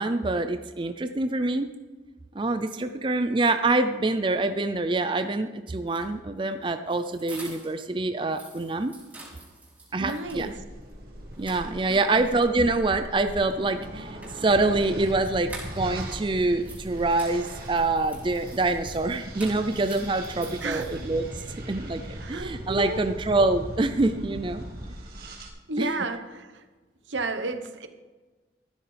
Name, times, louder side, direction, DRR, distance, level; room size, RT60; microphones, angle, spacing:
voice 1, 0.0-1.7 2.3-8.9 9.9-10.5 11.4-21.2 21.7-24.6 25.8-25.9, right 2 dB, 25° right, 9 dB, 0.4 m, -25 dB
sound 1, 5.8-7.9 8.2-10.5 10.9-11.0 11.3-12.2 13.8-16.1 16.4-21.3, right 2 dB, 10° right, 3.3 m, -47 dB
voice 2, 10.0-10.6 12.1-12.2 20.6-21.0 22.2-23.1 25.7-26.6 27.1-27.9, right 2 dB, 85° right, 8 dB, 1.1 m, -32 dB
sound 2, 10.2-25.5, right 1 dB, 55° right, 2.1 m, -39 dB
14.0 x 12.5 x 3.4 m, 1.3 s
head